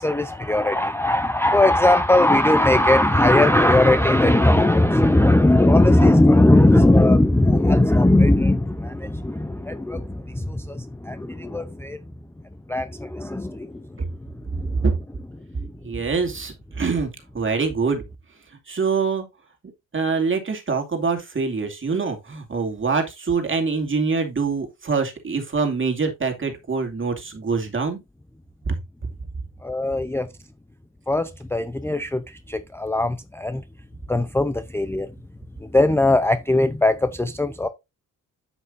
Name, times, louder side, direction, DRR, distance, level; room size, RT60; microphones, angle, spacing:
voice 1, 0.0-12.0 12.7-13.7 14.6-14.8 15.6-15.7 29.6-30.3 31.1-33.6 34.1-35.1 35.6-37.7, left 1 dB, 5° left, 0.6 m, -19 dB
voice 2, 15.8-18.0 18.7-19.3 19.9-28.0 28.7-28.8, right 4 dB, 35° right, 2.5 m, -24 dB
8.3 x 7.9 x 2.6 m
cardioid pair, 100°, 35 cm